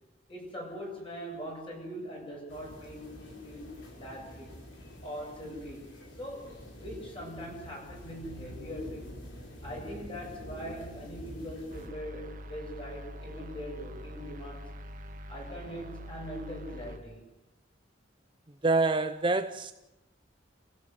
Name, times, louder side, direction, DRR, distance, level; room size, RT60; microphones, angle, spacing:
voice 1, 0.3-4.5 5.0-9.2 9.6-14.7 15.3-17.3, equal, 30° left, 7.6 m, -42 dB
sound 1, 2.5-11.9, equal, 70° left, 4.8 m, -47 dB
sound 2, 11.7-17.0, equal, 45° right, 2.0 m, -44 dB
voice 2, 18.6-19.7, right 3 dB, 25° right, 0.8 m, -26 dB
29.0 x 16.0 x 8.0 m
head